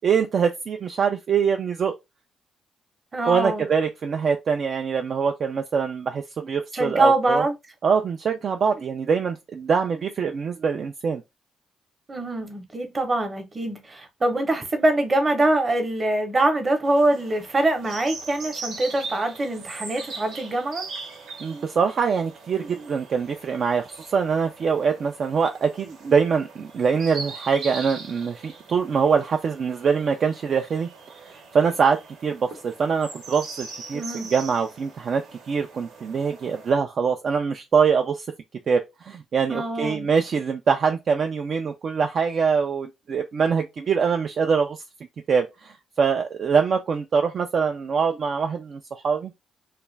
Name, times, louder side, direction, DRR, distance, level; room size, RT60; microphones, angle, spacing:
voice 1, 0.0-2.0 3.3-7.4 7.8-11.2 21.4-30.9 31.2-38.3 38.7-44.8 45.3-49.4, right 6 dB, 55° right, 0.3 m, -24 dB
voice 2, 3.1-3.7 6.7-7.5 12.1-20.8 33.9-34.3 39.5-40.1, right 2 dB, 30° right, 0.8 m, -23 dB
sound 1, 16.8-36.7, right 4 dB, 80° right, 0.9 m, -41 dB
2.4 x 2.2 x 3.1 m
cardioid pair, 90°, 0 cm